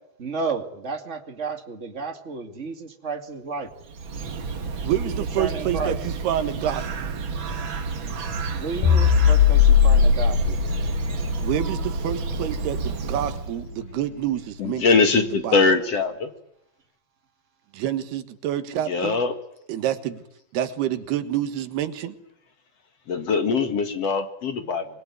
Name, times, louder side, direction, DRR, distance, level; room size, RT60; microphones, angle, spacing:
voice 1, 0.2-3.7 5.0-6.0 8.6-10.6, right 4 dB, 25° right, 6 dB, 2.0 m, -32 dB
Bird, 3.7-13.7, right 4 dB, 45° right, 1.7 m, -31 dB
voice 2, 4.8-7.1 11.4-15.6 17.7-19.2 19.7-20.2 20.5-22.2, right 11 dB, 85° right, 11 dB, 3.5 m, -28 dB
sound 1, 8.8-13.3, left 7 dB, 70° left, 4.5 m, -20 dB
voice 3, 14.6-16.3 18.9-19.4 23.1-24.9, left 4 dB, 50° left, 8 dB, 2.4 m, -22 dB
27.0 x 21.5 x 9.8 m, 0.77 s
omnidirectional pair, 4.5 m